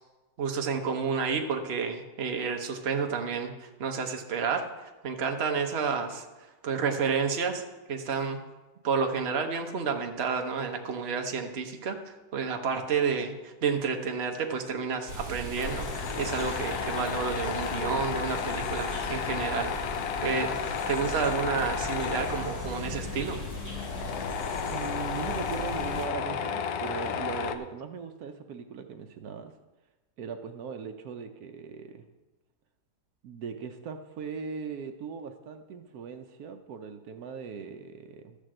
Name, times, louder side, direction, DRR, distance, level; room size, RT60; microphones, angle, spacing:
voice 1, 0.4-4.7 5.0-6.2 6.6-7.6 7.9-8.4 8.8-19.7 20.2-23.4, right 5 dB, 45° right, 4 dB, 1.2 m, -30 dB
sound 1, 15.1-26.1, right 1 dB, 10° left, 2.3 m, -39 dB
Tools, 15.6-27.6, left 7 dB, 80° left, 1.2 m, -33 dB
voice 2, 24.7-29.5 30.2-32.0 33.2-38.4, right 6 dB, 75° right, 6 dB, 1.2 m, -39 dB
12.5 x 5.1 x 7.6 m, 1.1 s
omnidirectional pair, 1.6 m